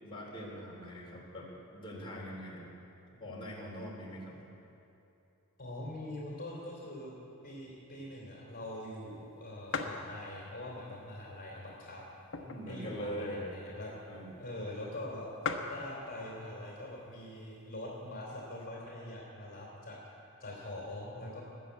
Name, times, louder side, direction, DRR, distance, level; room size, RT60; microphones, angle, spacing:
voice 1, 0.0-2.7 3.2-4.4 12.4-13.4 14.1-14.3, equal, 25° left, -4 dB, 3.2 m, -42 dB
voice 2, 5.6-7.1 7.4-12.0 12.7-13.9 14.4-15.3 15.7-21.4, left 1 dB, 40° left, -3 dB, 3.2 m, -43 dB
sound 1, 8.7-8.8 9.2-9.3 9.7-10.1 10.7-10.8 11.6-12.8 13.2-13.3 13.4-13.7 14.4-14.5 14.8-14.9 15.1-15.2 15.4-15.8 16.7-17.0 17.6-17.7 17.9-18.7, left 5 dB, 60° left, 1.1 m, -38 dB
20.0 x 7.1 x 8.4 m, 2.8 s
head